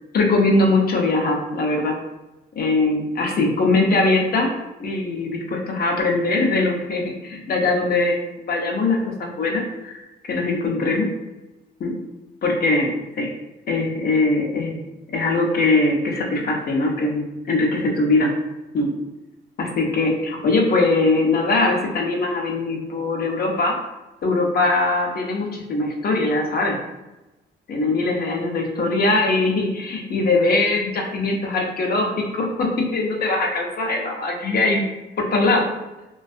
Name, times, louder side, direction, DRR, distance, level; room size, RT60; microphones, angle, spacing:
voice 1, 0.1-1.9 2.6-4.5 4.8-8.2 8.5-10.0 10.3-11.1 11.8-12.0 12.4-13.3 13.7-14.8 15.1-18.3 18.7-18.9 19.6-23.8 24.2-26.8 27.7-34.8 35.2-35.7, left 2 dB, 50° left, 1 dB, 0.6 m, -21 dB
2.4 x 2.3 x 2.4 m, 1.0 s
cardioid pair, 90°, 20 cm